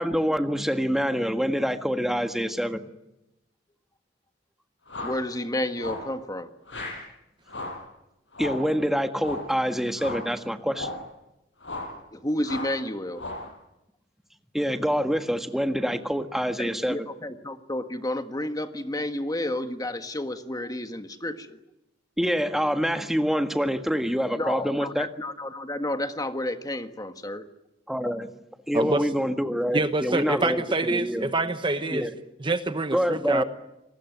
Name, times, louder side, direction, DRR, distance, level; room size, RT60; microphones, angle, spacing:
voice 1, 0.0-2.9 8.4-10.9 14.5-17.0 22.2-25.1 27.9-28.3 28.7-31.3 31.9-32.1 32.9-33.4, equal, ahead, 7 dB, 1.6 m, -26 dB
sound 1, 4.9-5.2 5.8-6.1 6.7-7.0 7.5-7.8 8.3-8.7 9.2-9.5 9.9-10.3 10.7-11.1 11.6-12.0 12.4-12.8 13.1-13.5, left 2 dB, 75° left, 7.0 m, -35 dB
voice 2, 5.0-6.5 12.1-13.2 16.6-21.6 24.4-27.4, left 1 dB, 20° left, 8 dB, 1.5 m, -31 dB
voice 3, 28.7-29.1 29.7-32.1 32.4-33.4, right 2 dB, 25° right, 10 dB, 1.1 m, -26 dB
28.5 x 20.0 x 9.4 m, 0.91 s
head